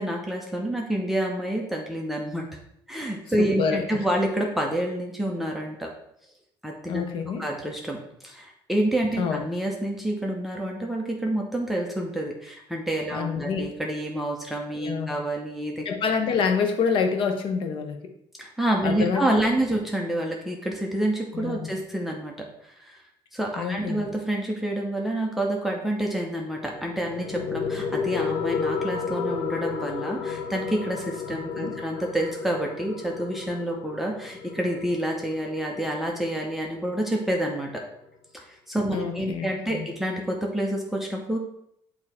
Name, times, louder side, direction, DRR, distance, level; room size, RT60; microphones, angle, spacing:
voice 1, 0.0-2.5 2.9-5.9 6.6-7.0 7.4-15.9 18.4-23.0 23.3-37.8 38.3-41.4, right 1 dB, ahead, 0 dB, 0.8 m, -28 dB
voice 2, 3.4-3.8 6.9-7.4 9.2-9.4 13.1-13.6 14.8-15.1 15.8-18.1 18.8-19.2 21.3-21.7 23.6-24.0 31.3-31.8 38.9-39.9, left 6 dB, 65° left, 5 dB, 1.0 m, -27 dB
sound 1, 26.5-37.5, left 5 dB, 90° left, 0.7 m, -33 dB
8.8 x 2.9 x 4.3 m, 0.76 s
cardioid pair, 135°, 9 cm